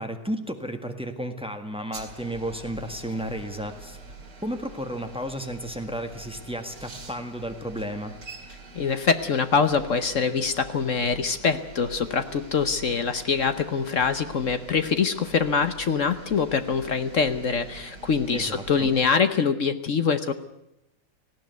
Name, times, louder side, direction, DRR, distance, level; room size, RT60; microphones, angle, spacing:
voice 1, 0.0-4.0 4.4-8.1 18.3-18.9, equal, 5° right, 6 dB, 1.4 m, -33 dB
sound 1, 1.9-19.1, right 3 dB, 55° right, 3.0 m, -45 dB
voice 2, 8.7-20.3, left 5 dB, 50° left, 10 dB, 1.0 m, -24 dB
18.5 x 16.0 x 9.3 m, 0.87 s
omnidirectional pair, 2.3 m